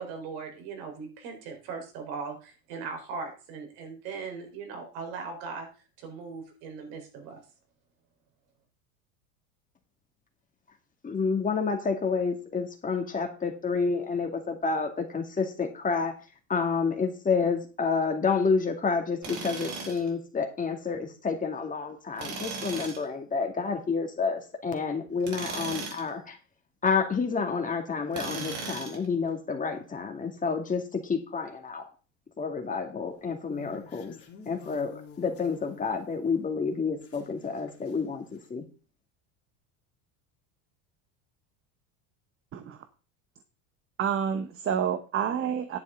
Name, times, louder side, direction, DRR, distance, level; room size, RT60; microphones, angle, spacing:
voice 1, 0.0-5.7 6.0-7.4, right 5 dB, 70° right, 3 dB, 4.5 m, -39 dB
voice 2, 11.0-16.1 16.5-26.4 26.8-31.8 32.4-34.1 34.5-38.6, left 5 dB, 20° left, 4 dB, 2.1 m, -29 dB
Tools, 19.2-20.1 22.2-23.0 25.2-26.1 28.1-29.1, right 4 dB, 50° right, 4.2 m, -36 dB
sound 1, 33.1-36.4 36.8-38.0 38.3-38.4, left 5 dB, 35° left, 2.7 m, -51 dB
voice 3, 44.0-45.8, right 8 dB, 35° right, 9 dB, 1.0 m, -28 dB
10.5 x 8.5 x 3.8 m, 0.35 s
supercardioid pair, 120°, 39 cm